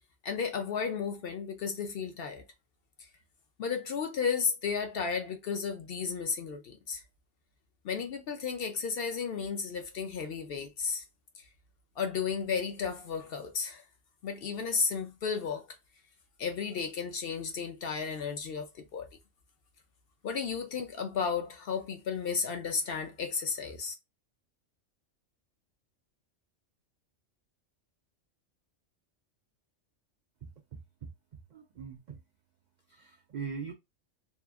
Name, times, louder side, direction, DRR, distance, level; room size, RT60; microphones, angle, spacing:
voice 1, 0.2-2.4 3.6-7.0 7.8-11.0 12.0-13.8 14.2-15.7 16.4-19.1 20.2-23.9, left 6 dB, 60° left, 0.7 m, -33 dB
voice 2, 30.4-31.1 31.5-32.2 32.9-33.7, right 6 dB, 80° right, 0.4 m, -42 dB
2.9 x 2.4 x 2.3 m
omnidirectional pair, 1.3 m